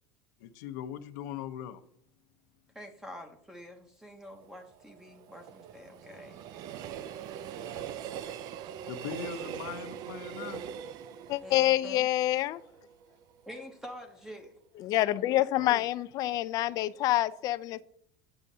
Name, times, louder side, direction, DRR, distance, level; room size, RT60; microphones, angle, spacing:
voice 1, 0.4-1.8 8.8-10.6 15.6-15.8, left 9 dB, 85° left, 0.7 m, -40 dB
voice 2, 2.7-6.4 11.4-12.4 13.5-14.6, left 1 dB, 5° right, 0.7 m, -46 dB
Train, 4.2-13.3 13.7-13.8, right 9 dB, 45° right, 0.4 m, -42 dB
voice 3, 11.3-12.6 14.8-17.8, left 15 dB, 40° left, 0.3 m, -27 dB
9.8 x 6.4 x 2.7 m
cardioid pair, 150°, 9 cm